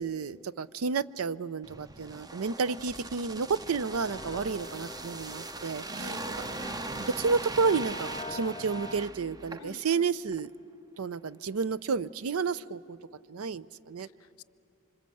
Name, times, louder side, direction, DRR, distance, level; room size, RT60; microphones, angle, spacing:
voice 1, 0.0-6.2 7.0-10.5 11.0-13.0 13.3-14.1, right 5 dB, 80° right, 17 dB, 0.5 m, -31 dB
sound 1, 1.6-10.0 10.3-10.5, right 2 dB, 20° right, 0.6 m, -40 dB
sound 2, 4.1-9.1, left 1 dB, 25° left, 0.8 m, -44 dB
voice 2, 6.0-6.4 9.6-10.0 14.0-14.4, left 6 dB, 85° left, 17 dB, 0.6 m, -48 dB
27.0 x 25.5 x 7.8 m, 2.6 s
head